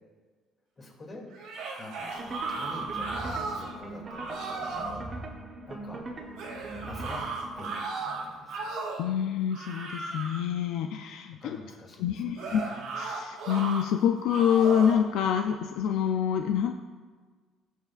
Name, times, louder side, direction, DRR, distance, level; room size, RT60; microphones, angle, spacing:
voice 1, 0.8-1.3 1.8-5.3 5.7-6.0 6.7-7.2 7.5-8.7 11.3-12.9, left 2 dB, 30° left, -2 dB, 2.5 m, -46 dB
sound 1, 1.3-3.7 4.1-5.0 6.4-9.1 9.5-10.5 12.4-13.8 14.3-15.0, right 3 dB, 85° right, 2.1 m, -35 dB
sound 2, 2.2-7.7, right 2 dB, 30° right, 1.1 m, -41 dB
voice 2, 9.0-11.6 12.0-12.6 13.0-16.7, left 8 dB, 75° left, 5 dB, 0.4 m, -26 dB
18.0 x 6.4 x 2.4 m, 1.5 s
cardioid pair, 140°, 0 cm